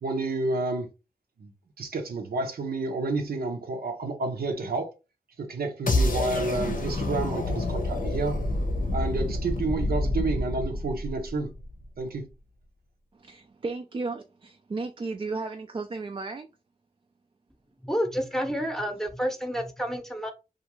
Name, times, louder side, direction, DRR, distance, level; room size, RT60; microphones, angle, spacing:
voice 1, 0.0-0.9 1.4-1.5 1.8-4.9 5.4-8.4 8.9-11.5 12.0-12.3, right 3 dB, 80° right, 0.7 m, -30 dB
sound 1, 5.9-11.8, left 2 dB, 60° left, 0.7 m, -28 dB
voice 2, 13.2-16.5, right 3 dB, 35° right, 0.3 m, -34 dB
voice 3, 17.8-20.3, equal, 5° left, 0.7 m, -29 dB
2.4 x 2.4 x 2.9 m
cardioid pair, 50°, 16 cm